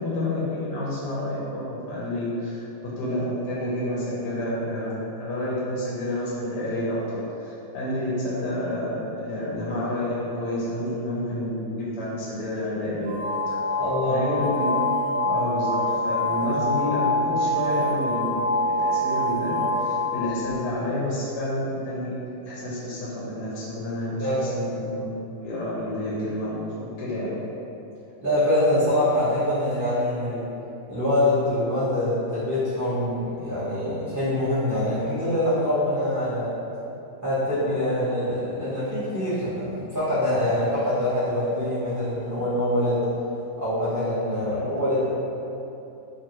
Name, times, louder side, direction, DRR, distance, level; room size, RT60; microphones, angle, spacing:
voice 1, 0.0-13.2 14.1-14.7 15.2-18.4 18.8-22.1 22.4-25.1 25.4-27.4 44.5-44.6, left 1 dB, 80° left, -7 dB, 1.3 m, -29 dB
sound 1, 13.0-20.6, left 1 dB, 70° right, 0.9 m, -25 dB
voice 2, 13.8-14.3 24.2-24.5 28.2-30.5 30.9-36.5 37.2-43.0 43.6-45.0, left 1 dB, 20° right, -15 dB, 0.5 m, -24 dB
3.0 x 2.5 x 2.8 m, 2.8 s
omnidirectional pair, 1.8 m